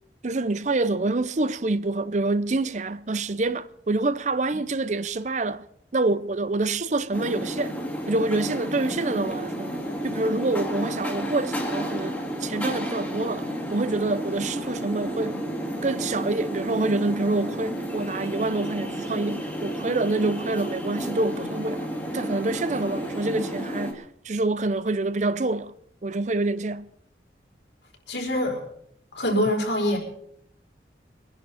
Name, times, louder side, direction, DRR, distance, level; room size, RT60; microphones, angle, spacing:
voice 1, 0.2-5.6 5.9-7.8 8.1-9.7 10.0-15.4 15.8-21.9 22.1-25.7 26.0-26.9, right 2 dB, 40° right, 0.6 m, -26 dB
sound 1, 7.1-23.9, equal, 5° left, 2.2 m, -31 dB
voice 2, 28.1-28.6 29.1-30.0, left 1 dB, 85° left, 4.6 m, -24 dB
23.5 x 11.0 x 4.2 m
head